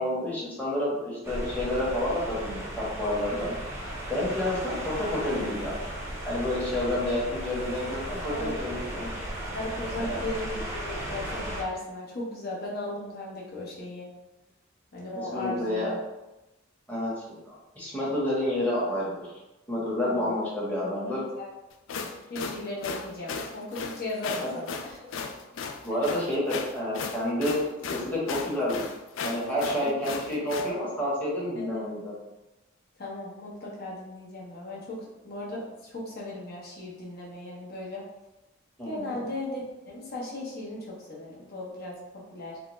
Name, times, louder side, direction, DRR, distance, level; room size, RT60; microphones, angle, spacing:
voice 1, 0.0-3.5 4.1-5.8 6.2-9.1 10.0-10.2 15.3-15.9 16.9-17.1 17.5-19.1 19.7-21.2 25.8-27.6 27.9-28.8 29.2-32.1 38.8-39.2, left 1 dB, 10° left, -7 dB, 0.9 m, -29 dB
sound 1, 1.2-11.6, right 1 dB, 15° right, 0.6 m, -36 dB
voice 2, 4.3-4.6 8.3-8.5 9.5-14.1 14.9-16.0 20.0-20.3 21.0-21.5 22.0-25.0 31.5-31.9 33.0-38.0 38.9-42.6, left 2 dB, 50° left, -4 dB, 0.8 m, -37 dB
sound 2, 21.7-30.7, left 5 dB, 70° left, 0.3 m, -35 dB
3.6 x 2.1 x 3.0 m, 1.0 s
head